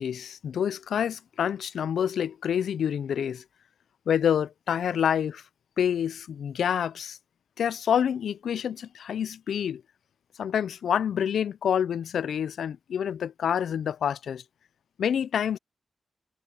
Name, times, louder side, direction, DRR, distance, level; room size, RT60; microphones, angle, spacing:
voice 1, 0.0-3.4 4.1-5.4 5.8-7.2 7.6-9.8 10.4-14.4 15.0-15.6, left 8 dB, 90° left, 0.3 m, -27 dB
wide cardioid pair, 175°, 0 cm